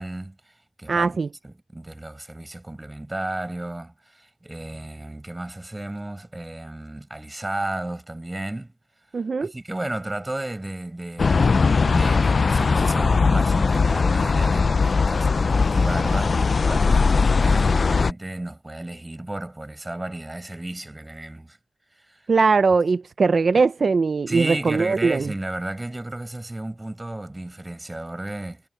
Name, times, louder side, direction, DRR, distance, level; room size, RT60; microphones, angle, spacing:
voice 1, 0.0-1.2 1.4-8.7 9.4-21.6 21.9-22.3 24.3-28.6, right 1 dB, 25° right, 5.6 m, -33 dB
voice 2, 0.9-1.3 9.1-9.5 22.3-25.3, right 4 dB, 70° right, 0.5 m, -20 dB
sound 1, 11.2-18.1, left 4 dB, 65° left, 0.4 m, -19 dB
cardioid pair, 60°, 0 cm